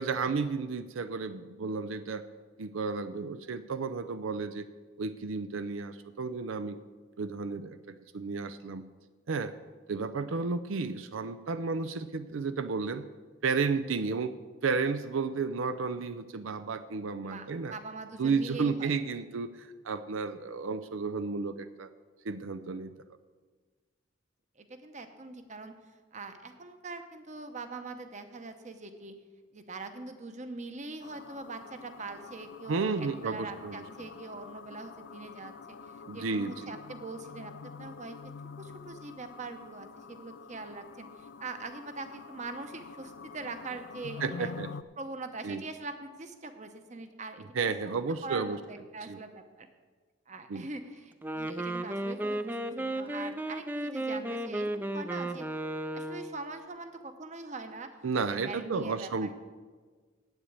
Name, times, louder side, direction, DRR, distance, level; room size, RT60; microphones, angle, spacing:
voice 1, 0.0-2.3 2.6-4.7 5.0-6.8 7.2-8.8 9.3-9.5 9.9-13.0 13.4-14.3 14.6-17.7 18.2-21.9 22.2-22.9 32.7-33.8 36.1-36.8 44.2-44.7 45.4-45.6 47.5-48.6 49.1-49.2 50.5-50.6 58.0-59.3, right 4 dB, 85° right, 11 dB, 0.5 m, -32 dB
voice 2, 17.2-18.9 24.6-25.7 26.1-29.1 29.5-35.8 36.1-38.2 38.6-44.5 45.0-47.4 47.9-49.7 50.3-55.5 55.9-57.9 58.4-59.3, right 3 dB, 35° right, 8 dB, 0.9 m, -42 dB
sound 1, 31.0-44.8, left 5 dB, 60° left, 0.4 m, -47 dB
Wind instrument woodwind instrument, 51.1-56.4, right 1 dB, 10° right, 0.4 m, -34 dB
8.2 x 7.9 x 8.8 m, 1.4 s
head